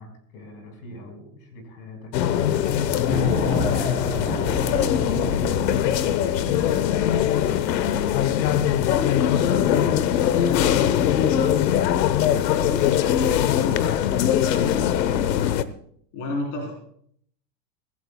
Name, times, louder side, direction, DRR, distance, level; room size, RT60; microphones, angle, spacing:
voice 1, 0.0-11.5, left 2 dB, 60° left, 4 dB, 5.1 m, -42 dB
sound 1, 2.1-15.6, left 10 dB, 80° left, 1.1 m, -21 dB
sound 2, 3.1-6.8, left 1 dB, 15° left, 3.2 m, -29 dB
voice 2, 12.5-13.0 13.3-14.7 16.1-16.8, left 2 dB, 40° left, 0 dB, 4.1 m, -33 dB
25.0 x 16.0 x 2.3 m, 0.64 s
supercardioid pair, 160°, 50 cm